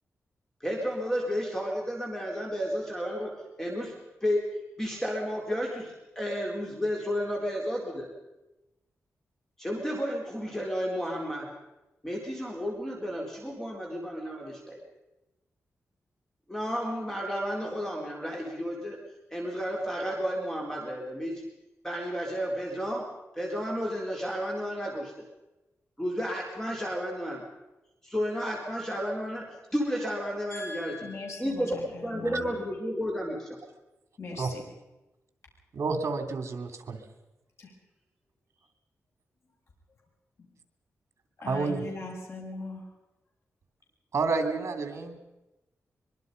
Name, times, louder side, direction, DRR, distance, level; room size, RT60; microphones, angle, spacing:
voice 1, 0.6-3.9 4.2-4.5 4.8-8.1 9.6-11.5 12.0-14.8 16.5-19.0 19.3-21.4 21.8-23.0 23.4-25.1 26.0-27.4 28.0-29.5 29.7-31.0 31.4-33.6, equal, 10° left, -1 dB, 4.0 m, -32 dB
voice 2, 30.5-32.7 34.2-34.6 37.6-37.7 40.4-40.5 41.4-42.8, left 3 dB, 60° left, -1 dB, 6.9 m, -40 dB
voice 3, 35.7-37.0 41.5-41.8 44.1-45.2, right 4 dB, 60° right, 7 dB, 3.2 m, -29 dB
24.0 x 23.0 x 5.4 m, 0.99 s
wide cardioid pair, 115°, 5 cm